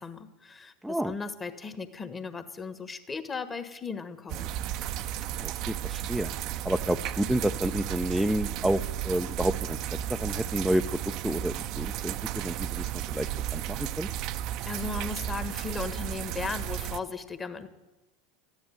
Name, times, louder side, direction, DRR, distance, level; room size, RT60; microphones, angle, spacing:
voice 1, 0.0-4.6 14.6-17.7, left 4 dB, 20° left, 10 dB, 1.4 m, -37 dB
sound 1, 4.3-17.0, right 12 dB, 45° right, 0.6 m, -34 dB
voice 2, 5.4-6.3 6.6-14.1, right 1 dB, ahead, 6 dB, 0.5 m, -30 dB
13.5 x 10.5 x 9.2 m, 1.1 s
figure-of-eight pair, 80°, 0 cm